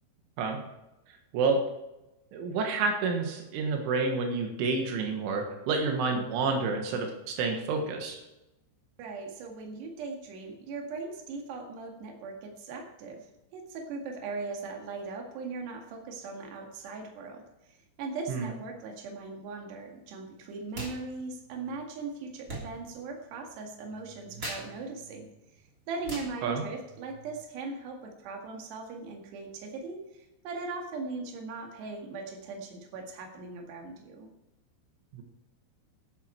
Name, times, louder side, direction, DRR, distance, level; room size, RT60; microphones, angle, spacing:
voice 1, 2.3-8.2 18.3-18.5 26.4-26.6 35.1-35.2, right 4 dB, 90° right, 3 dB, 3.9 m, -29 dB
voice 2, 9.0-25.3 25.9-34.3, right 4 dB, 65° right, 2 dB, 4.0 m, -39 dB
sound 1, 20.7-21.0 21.2-27.4, right 1 dB, 20° right, 2.8 m, -44 dB
12.5 x 10.5 x 4.6 m, 0.95 s
omnidirectional pair, 5.5 m